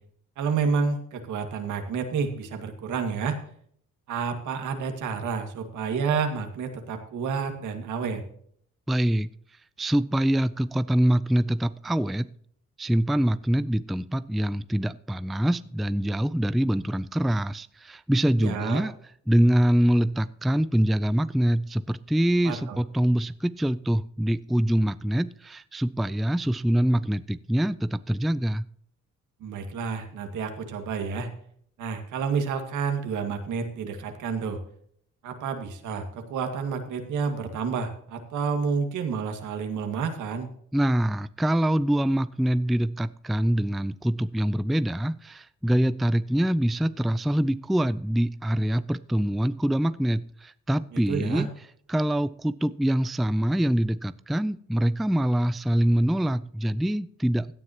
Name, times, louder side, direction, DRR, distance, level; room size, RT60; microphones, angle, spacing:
voice 1, 0.4-3.4 4.1-8.2 18.4-18.8 22.4-22.8 29.4-31.3 31.8-34.6 35.2-40.5 50.9-51.4, right 5 dB, 80° right, 6 dB, 2.0 m, -29 dB
voice 2, 8.9-9.3 9.8-12.3 12.8-18.9 19.3-28.6 40.7-51.5 51.9-57.5, right 1 dB, ahead, 15 dB, 0.4 m, -24 dB
16.5 x 9.6 x 2.9 m, 0.63 s
cardioid pair, 90°, 30 cm